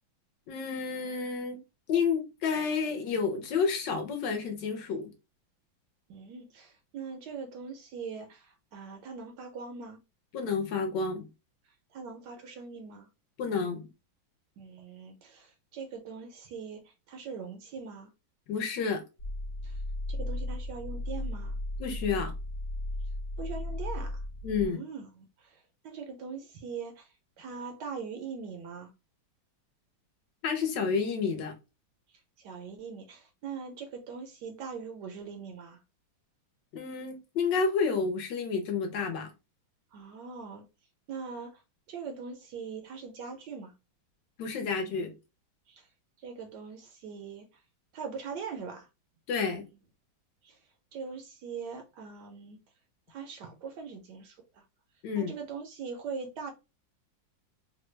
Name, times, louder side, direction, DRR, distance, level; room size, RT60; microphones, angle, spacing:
voice 1, 0.5-1.6 1.9-5.1 10.3-11.3 13.4-13.9 18.5-19.0 21.8-22.3 24.4-24.8 30.4-31.5 36.7-39.3 44.4-45.1 49.3-49.7 55.0-55.3, left 5 dB, 70° left, 1.2 m, -30 dB
voice 2, 6.1-10.0 11.9-13.1 14.6-18.1 19.6-19.8 20.1-21.6 23.4-24.2 24.6-27.1 27.4-28.9 32.4-35.8 39.9-40.6 41.1-41.6 41.9-43.7 45.7-45.9 46.2-47.6 47.9-48.9 49.4-49.6 50.4-50.6 50.9-52.6 53.1-54.6 55.2-56.5, right 5 dB, 75° right, 1.0 m, -41 dB
sound 1, 19.2-24.7, left 1 dB, 55° left, 1.4 m, -35 dB
3.2 x 2.2 x 3.1 m
omnidirectional pair, 2.1 m